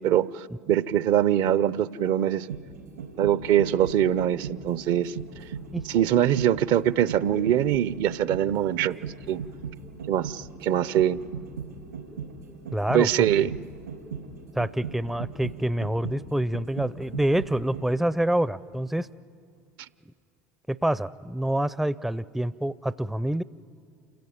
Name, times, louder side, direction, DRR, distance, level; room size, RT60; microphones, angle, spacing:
voice 1, 0.0-2.5 3.2-5.1 5.9-9.0 9.3-9.4 10.1-11.2 12.9-13.5, right 11 dB, 55° right, 18 dB, 0.6 m, -23 dB
sound 1, 2.2-18.1 18.5-18.6, right 6 dB, 80° right, 4.5 m, -38 dB
voice 2, 12.7-13.3 14.5-19.1 20.7-23.4, right 1 dB, 5° right, 17 dB, 0.5 m, -27 dB
28.5 x 15.5 x 9.4 m, 2.4 s
figure-of-eight pair, 70°, 9 cm